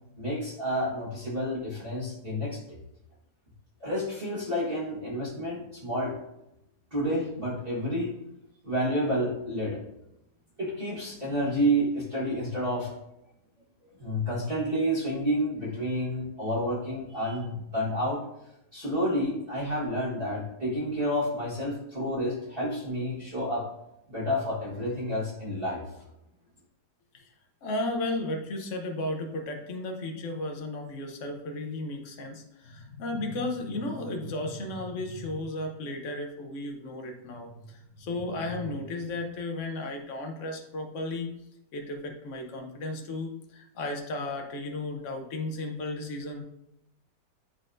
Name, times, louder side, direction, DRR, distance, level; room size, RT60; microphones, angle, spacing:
voice 1, 0.2-2.8 3.8-6.2 6.9-8.1 8.6-9.8 10.6-12.9 14.0-18.2 18.7-23.6 24.1-25.8, equal, 30° right, -7 dB, 1.6 m, -29 dB
voice 2, 27.6-41.3 41.7-46.4, left 2 dB, 50° left, 3 dB, 1.1 m, -34 dB
9.8 x 4.0 x 2.6 m, 0.83 s
omnidirectional pair, 1.9 m